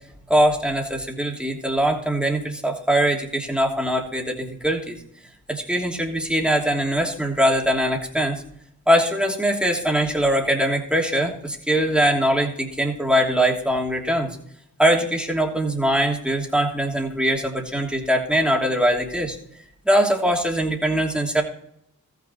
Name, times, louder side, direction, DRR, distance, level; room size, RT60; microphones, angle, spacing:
voice 1, 0.3-4.9 5.5-8.4 8.9-14.3 14.8-19.4 19.8-21.4, equal, 5° right, 0 dB, 2.9 m, -22 dB
14.0 x 6.7 x 4.5 m, 0.71 s
cardioid pair, 45°, 37 cm